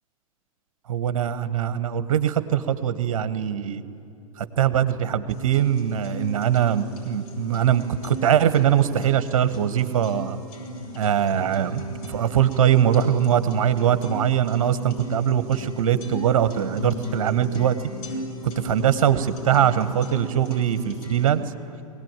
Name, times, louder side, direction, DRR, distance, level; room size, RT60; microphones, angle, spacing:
voice 1, 0.9-3.8 4.4-10.4 10.9-17.8 18.4-21.4, right 9 dB, 60° right, 12 dB, 1.3 m, -22 dB
sound 1, 5.3-21.3, equal, 40° left, 6.2 m, -37 dB
22.5 x 18.0 x 9.1 m, 2.8 s
figure-of-eight pair, 100°, 19 cm